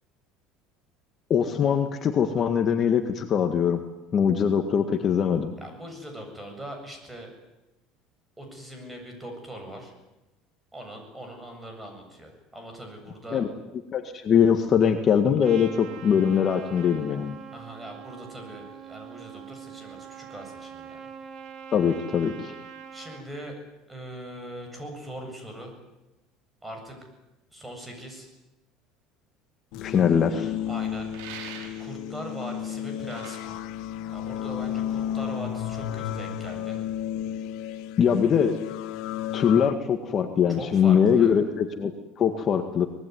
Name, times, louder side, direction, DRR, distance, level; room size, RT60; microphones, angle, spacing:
voice 1, 1.3-3.8 4.1-5.5 13.3-13.5 13.9-17.4 21.7-22.5 29.7-30.5 38.0-38.6 39.3-41.9 42.2-42.9, left 7 dB, 35° left, 6 dB, 1.9 m, -22 dB
voice 2, 5.6-7.3 8.4-9.9 10.7-13.4 17.5-21.1 22.9-23.6 23.9-25.7 26.6-27.1 27.5-28.3 30.7-31.1 31.8-33.6 34.1-36.8 40.5-41.3, right 1 dB, 10° right, 4 dB, 7.6 m, -41 dB
Trumpet, 15.4-23.3, right 7 dB, 50° right, 3.0 m, -43 dB
sound 1, 29.7-39.7, left 10 dB, 65° left, 1.7 m, -33 dB
sound 2, 31.1-32.1 32.9-34.6, right 7 dB, 85° right, 5.8 m, -43 dB
24.5 x 20.0 x 9.6 m, 0.98 s
cardioid pair, 135°, 0 cm